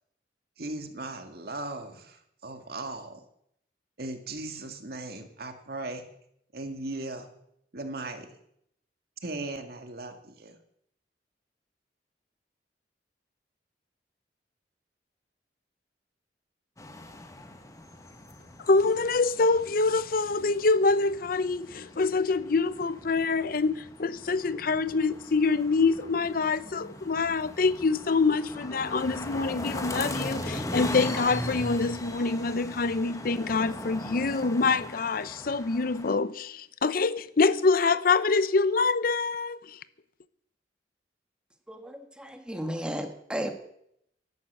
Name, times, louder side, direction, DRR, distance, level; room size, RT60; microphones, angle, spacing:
voice 1, 0.6-3.2 4.0-6.0 6.5-7.3 7.7-8.3 9.2-10.6, right 2 dB, 60° right, 2.1 m, -38 dB
sound 1, 16.8-36.1, left 1 dB, 20° left, 1.6 m, -39 dB
voice 2, 18.7-39.8, left 4 dB, 55° left, 0.6 m, -25 dB
voice 3, 41.7-43.5, equal, 5° right, 1.7 m, -34 dB
12.0 x 11.5 x 8.1 m
head